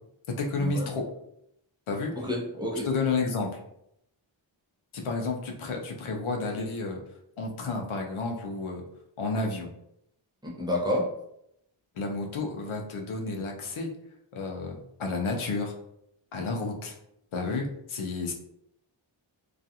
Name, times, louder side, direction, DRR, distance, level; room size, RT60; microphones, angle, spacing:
voice 1, 0.4-1.1 1.9-2.1 2.8-3.6 4.9-7.0 7.4-8.8 9.2-9.7 12.0-13.9 14.3-15.7 16.3-16.9 17.3-18.3, left 3 dB, 85° left, 1 dB, 0.6 m, -31 dB
voice 2, 2.2-2.9 10.4-11.1, left 1 dB, 10° right, -3 dB, 0.7 m, -29 dB
2.4 x 2.3 x 2.7 m, 0.76 s
wide cardioid pair, 80°, 48 cm